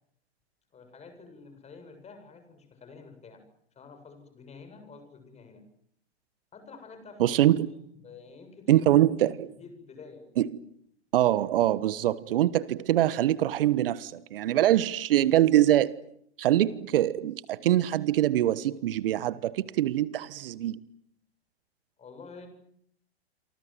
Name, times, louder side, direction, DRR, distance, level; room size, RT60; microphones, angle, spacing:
voice 1, 0.7-3.4 3.7-5.6 6.5-7.6 8.0-9.0 9.5-10.3 22.0-22.5, left 4 dB, 20° left, 7.6 m, -49 dB
voice 2, 7.2-7.7 8.7-9.5 10.4-10.5 11.1-16.0 16.4-20.8, right 13 dB, 55° right, 1.3 m, -24 dB
29.0 x 24.0 x 7.7 m
figure-of-eight pair, 105°, 33 cm